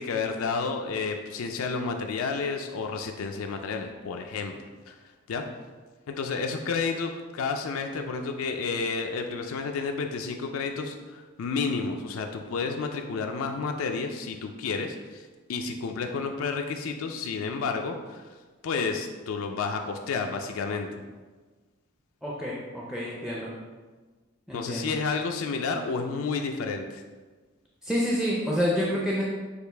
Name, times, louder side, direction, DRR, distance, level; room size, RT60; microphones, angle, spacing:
voice 1, 0.0-4.5 4.9-5.0 5.3-5.4 6.1-18.3 18.6-20.9 24.5-27.0, left 4 dB, 85° left, 4 dB, 0.4 m, -31 dB
voice 2, 22.2-23.5 24.5-24.9 27.8-29.2, equal, 5° right, -5 dB, 0.4 m, -28 dB
6.5 x 2.4 x 3.3 m, 1.3 s
head